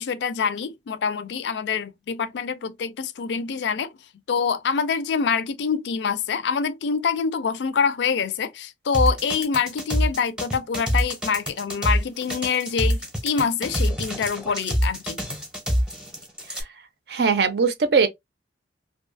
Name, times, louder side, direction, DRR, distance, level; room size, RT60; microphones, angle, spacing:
voice 1, 0.0-3.9 4.3-15.2, left 6 dB, 75° left, 0.4 m, -25 dB
sound 1, 8.9-16.6, equal, 5° right, 0.6 m, -25 dB
voice 2, 17.1-18.1, right 5 dB, 65° right, 0.5 m, -20 dB
2.7 x 2.3 x 2.5 m
head